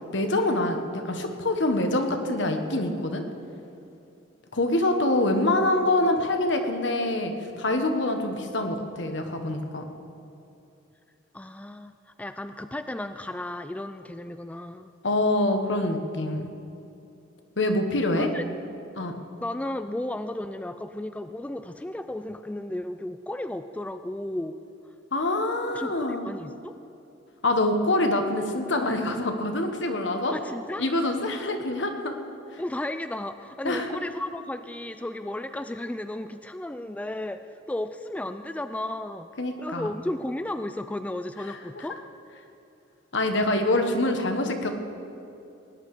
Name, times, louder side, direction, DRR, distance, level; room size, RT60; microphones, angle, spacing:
voice 1, 0.1-3.2 4.5-9.8 15.0-16.5 17.6-18.3 19.0-19.1 25.1-26.2 27.4-30.3 30.8-32.1 32.5-32.6 33.6-33.9 39.4-39.9 41.5-41.9 43.1-44.7, left 1 dB, 70° left, 5 dB, 1.4 m, -25 dB
voice 2, 11.3-14.9 18.2-18.5 19.4-24.6 25.7-26.8 30.3-30.8 32.6-39.3 39.6-42.0, left 1 dB, 10° left, 10 dB, 0.3 m, -34 dB
19.0 x 10.0 x 4.9 m, 2.7 s
head